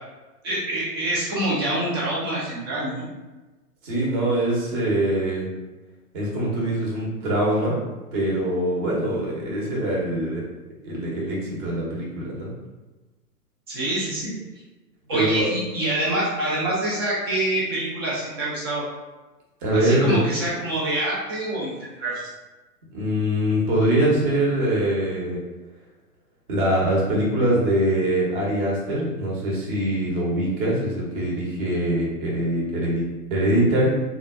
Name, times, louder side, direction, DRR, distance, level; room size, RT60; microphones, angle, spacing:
voice 1, 0.4-3.1 13.7-14.4 15.1-18.8 19.7-22.2, right 1 dB, 15° right, -6 dB, 0.4 m, -26 dB
voice 2, 3.8-5.5 6.1-7.8 8.1-10.4 10.8-12.5 15.1-15.5 19.6-20.4 22.9-25.4 26.5-33.9, right 1 dB, 35° right, -3 dB, 1.0 m, -23 dB
3.8 x 2.3 x 2.3 m, 1.2 s
hypercardioid pair, 125°, 48 cm